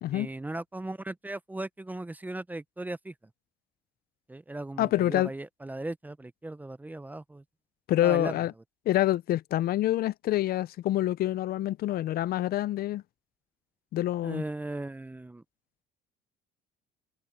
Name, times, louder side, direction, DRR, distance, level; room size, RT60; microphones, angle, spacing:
voice 1, 0.1-3.1 4.3-7.4 8.0-8.4 14.2-15.4, right 2 dB, 10° right, 0.6 m, -37 dB
voice 2, 4.8-5.3 7.9-8.5 8.9-13.0 13.9-14.4, left 14 dB, 55° left, 0.5 m, -27 dB
open air
cardioid pair, 110°, 18 cm